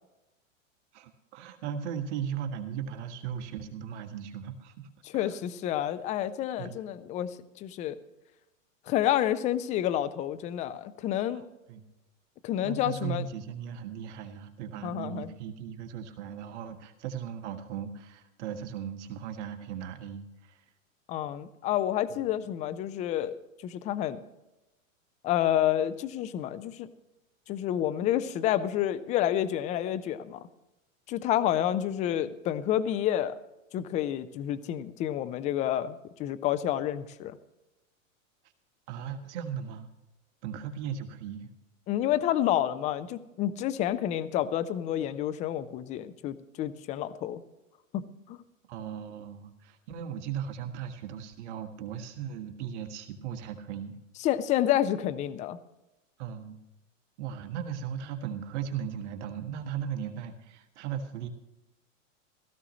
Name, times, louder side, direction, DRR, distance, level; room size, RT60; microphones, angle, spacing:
voice 1, 0.9-5.3 6.6-6.8 11.3-11.4 11.7-11.8 12.6-20.6 38.9-39.9 40.4-41.5 48.7-54.0 56.2-56.6 57.2-61.3, right 8 dB, 60° right, 5 dB, 1.6 m, -37 dB
voice 2, 5.1-8.0 8.9-11.4 12.4-13.3 14.8-15.3 21.1-23.4 23.6-24.2 25.2-26.9 27.5-30.5 31.1-33.3 33.7-37.4 41.9-47.4 47.9-48.0 48.3-48.4 54.2-55.6, left 11 dB, 20° left, 15 dB, 0.4 m, -29 dB
16.5 x 14.0 x 3.1 m, 0.99 s
hypercardioid pair, 125°, 40 cm